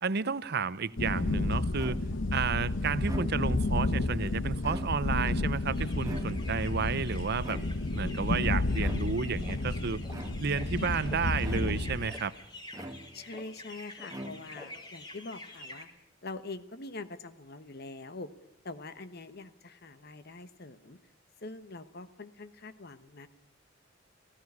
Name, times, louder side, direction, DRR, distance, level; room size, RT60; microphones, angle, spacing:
voice 1, 0.0-2.0 2.3-7.6 7.9-10.0 10.4-12.3, right 5 dB, 55° right, 0.7 m, -32 dB
sound 1, 1.0-12.1, left 2 dB, 75° left, 1.0 m, -31 dB
sound 2, 1.8-2.3 2.9-3.7 4.5-5.3 6.0-6.7 7.4-8.1 8.8-9.3 10.1-10.7 11.4-12.0 12.7-13.4 14.1-14.8, right 1 dB, 20° right, 1.1 m, -44 dB
sound 3, 5.6-15.8, left 1 dB, 25° left, 3.9 m, -47 dB
voice 2, 13.1-15.9 16.2-18.3 18.6-21.0 21.4-23.3, left 3 dB, 55° left, 1.1 m, -44 dB
18.0 x 15.5 x 9.6 m
head